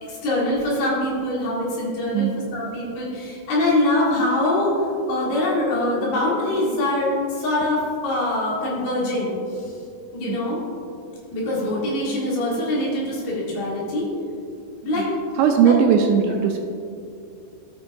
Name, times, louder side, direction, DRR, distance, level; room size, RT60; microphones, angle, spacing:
voice 1, 0.0-4.7 5.1-9.7 10.1-10.6 11.3-14.1 14.9-15.1 15.6-15.7, left 1 dB, 65° left, -5 dB, 3.3 m, -23 dB
voice 2, 15.4-16.6, right 7 dB, 80° right, 4 dB, 2.6 m, -18 dB
13.0 x 6.2 x 2.6 m, 2.4 s
omnidirectional pair, 5.1 m